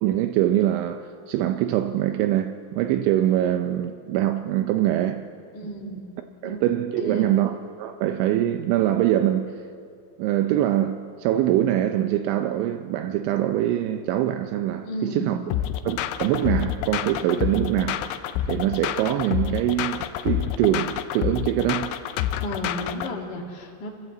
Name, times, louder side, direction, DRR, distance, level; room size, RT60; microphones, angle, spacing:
voice 1, 0.0-5.3 6.4-9.6 10.2-15.4 15.9-18.0 18.5-22.0, right 12 dB, 80° right, 2.8 m, -23 dB
voice 2, 5.5-6.2 6.4-6.6 7.0-7.4 14.8-15.3 22.4-23.9, equal, 55° left, 1.2 m, -33 dB
sound 1, 15.5-23.1, left 11 dB, 80° left, 2.7 m, -28 dB
27.5 x 13.0 x 7.9 m
omnidirectional pair, 5.9 m